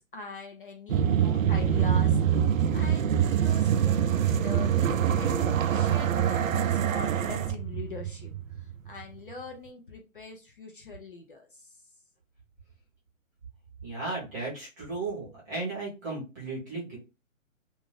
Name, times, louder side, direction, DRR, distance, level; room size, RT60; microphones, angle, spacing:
voice 1, 0.0-8.3 8.6-11.8, left 3 dB, 40° left, 3 dB, 0.6 m, -43 dB
sound 1, 0.9-9.0, right 9 dB, 75° right, 0.5 m, -25 dB
voice 2, 13.8-17.0, right 3 dB, 15° right, -5 dB, 0.7 m, -35 dB
2.5 x 2.5 x 3.2 m, 0.28 s
hypercardioid pair, 160°, 40 cm